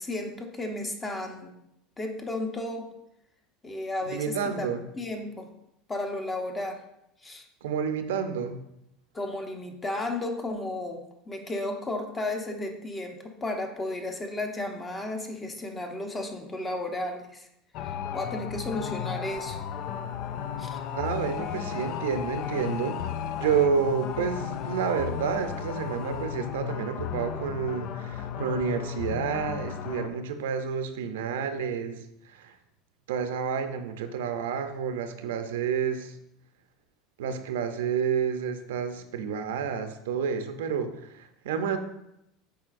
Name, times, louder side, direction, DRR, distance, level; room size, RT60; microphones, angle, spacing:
voice 1, 0.0-1.5 2.0-2.9 3.6-5.5 5.9-6.8 7.2-7.4 9.1-17.5 17.8-19.6 20.6-20.8, left 2 dB, 20° left, 4 dB, 1.0 m, -33 dB
voice 2, 4.1-4.8 7.6-8.6 20.9-23.0 23.4-32.0 32.2-32.5 33.1-36.1 37.2-41.8, right 6 dB, 90° right, 8 dB, 0.6 m, -29 dB
sound 1, 17.7-30.1, left 8 dB, 60° left, 0.4 m, -34 dB
7.6 x 4.9 x 2.6 m, 0.81 s
supercardioid pair, 105°, 0 cm